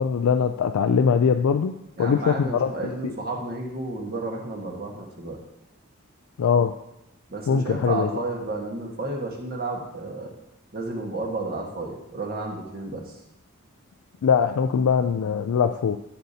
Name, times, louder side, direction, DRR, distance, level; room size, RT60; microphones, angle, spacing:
voice 1, 0.0-3.1 6.4-6.8 7.5-8.1 14.2-16.0, left 6 dB, 80° left, 7 dB, 0.4 m, -22 dB
voice 2, 2.0-5.4 7.3-10.3 10.7-13.1, right 2 dB, 45° right, 1 dB, 1.4 m, -32 dB
13.0 x 6.6 x 2.8 m, 0.87 s
head